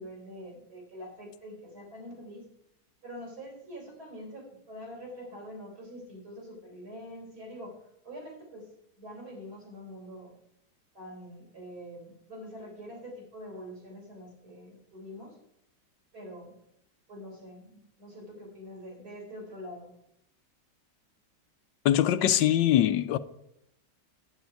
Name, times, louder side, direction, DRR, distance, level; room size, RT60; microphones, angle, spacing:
voice 1, 0.0-2.4 3.0-7.8 8.0-8.7 9.0-10.3 10.9-15.4 16.1-16.6 17.1-19.9, equal, 60° right, 4.5 m, -45 dB
voice 2, 21.8-23.2, left 12 dB, 85° left, 1.3 m, -23 dB
10.5 x 9.5 x 4.6 m
omnidirectional pair, 2.0 m